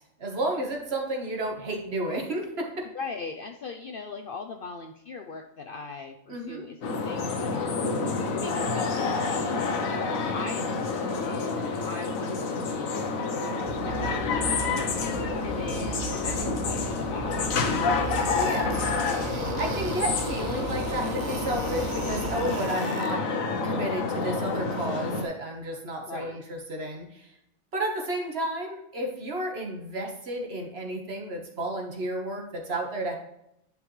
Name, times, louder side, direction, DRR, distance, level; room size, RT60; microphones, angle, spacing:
voice 1, 0.2-2.9 6.3-6.6 18.3-18.9 19.3-23.3 23.6-27.3 27.7-33.2, right 1 dB, 50° right, 1 dB, 1.6 m, -32 dB
voice 2, 2.9-7.8 8.4-9.6 10.3-13.3 13.8-14.6 15.0-17.9 19.9-20.0 26.0-26.4, left 4 dB, 60° left, 4 dB, 0.6 m, -40 dB
sound 1, 6.8-25.3, left 4 dB, 80° left, 1.3 m, -28 dB
sound 2, 13.6-22.5, right 4 dB, 35° right, 1.3 m, -37 dB
sound 3, 17.3-17.4 17.8-23.1, right 7 dB, 75° right, 1.1 m, -41 dB
10.5 x 5.4 x 3.2 m, 0.80 s
omnidirectional pair, 1.4 m